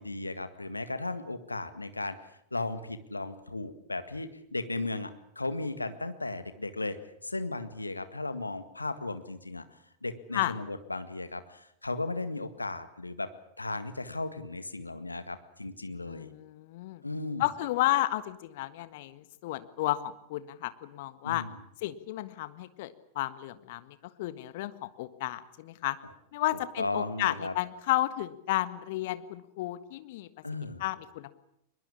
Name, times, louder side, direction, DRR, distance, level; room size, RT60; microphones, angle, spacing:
voice 1, 0.0-2.2 2.5-7.0 7.2-9.6 10.0-13.3 13.6-16.3 17.0-17.5 21.2-21.6 26.8-27.5 30.4-30.8, left 2 dB, 80° left, 10 dB, 1.9 m, -35 dB
voice 2, 16.1-17.0 17.4-21.4 21.8-26.0 26.3-30.3 30.8-31.3, left 16 dB, 50° left, 13 dB, 1.6 m, -32 dB
22.5 x 21.5 x 8.6 m, 0.76 s
figure-of-eight pair, 90°, 0 cm